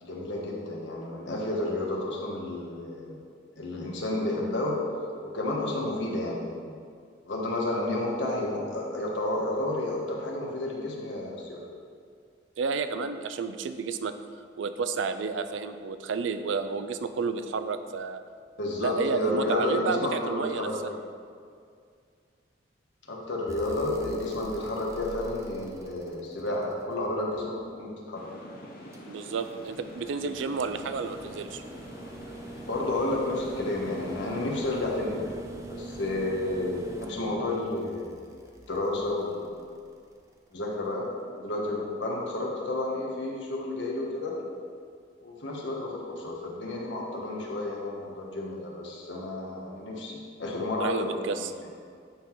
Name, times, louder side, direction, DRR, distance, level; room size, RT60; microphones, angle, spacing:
voice 1, 0.0-3.2 3.6-6.8 7.2-11.6 18.6-21.0 23.1-28.2 32.6-35.4 35.7-38.1 38.7-39.7 40.5-41.0 41.3-44.3 45.2-51.1 51.4-51.5, left 2 dB, 75° left, -2 dB, 1.2 m, -31 dB
voice 2, 12.6-14.1 14.6-18.2 18.8-20.9 29.1-31.6 50.8-51.5, right 4 dB, 80° right, 10 dB, 0.4 m, -31 dB
sound 1, 23.5-27.7 28.9-40.1 41.7-41.8, right 1 dB, 15° right, 0.5 m, -44 dB
sound 2, 28.1-34.7, left 1 dB, 50° left, 0.8 m, -45 dB
8.6 x 3.8 x 4.5 m, 2.2 s
head